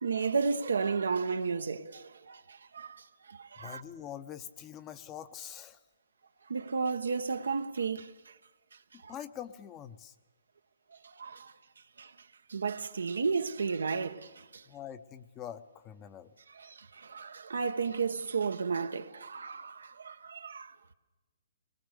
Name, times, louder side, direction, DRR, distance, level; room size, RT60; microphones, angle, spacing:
voice 1, 0.0-2.4 2.7-3.0 3.3-3.8 6.5-8.1 11.2-11.5 12.0-12.1 12.5-14.6 16.6-20.7, right 5 dB, 85° right, 1.1 m, -33 dB
voice 2, 3.6-5.8 8.9-10.1 14.7-16.3, left 10 dB, 20° left, 0.9 m, -44 dB
22.5 x 21.0 x 6.7 m
hypercardioid pair, 150°, 0 cm